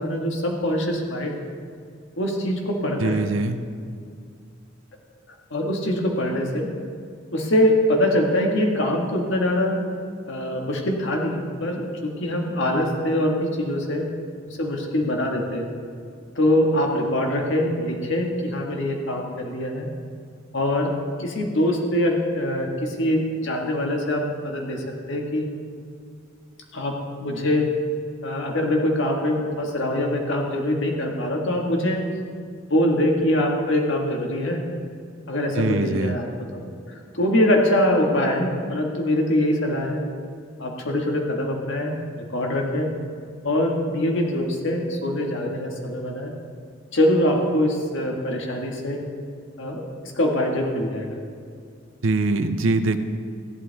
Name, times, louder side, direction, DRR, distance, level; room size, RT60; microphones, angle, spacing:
voice 1, 0.0-1.3 2.2-3.2 5.5-6.7 7.3-9.8 10.3-14.1 14.5-15.7 16.4-19.9 20.5-20.9 21.2-25.5 26.7-27.7 28.2-32.0 32.7-34.6 35.3-36.2 36.5-36.6 37.1-40.0 40.6-41.9 42.3-42.9 43.4-46.3 46.9-49.0 49.6-49.8 50.2-51.2, left 1 dB, 65° left, 1 dB, 1.7 m, -23 dB
voice 2, 3.0-3.6 35.6-36.1 52.0-53.0, right 2 dB, 75° right, 9 dB, 0.7 m, -22 dB
15.0 x 11.0 x 3.5 m, 2.3 s
head